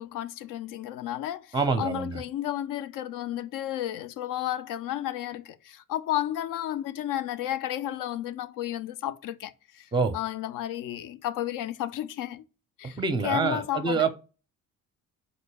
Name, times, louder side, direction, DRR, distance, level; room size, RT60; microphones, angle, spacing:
voice 1, 0.0-12.4 12.8-14.1, left 12 dB, 60° left, 0.5 m, -32 dB
voice 2, 1.5-2.2 9.9-10.1 13.0-14.1, right 4 dB, 15° right, 0.6 m, -26 dB
4.0 x 2.2 x 3.2 m
supercardioid pair, 80°, 36 cm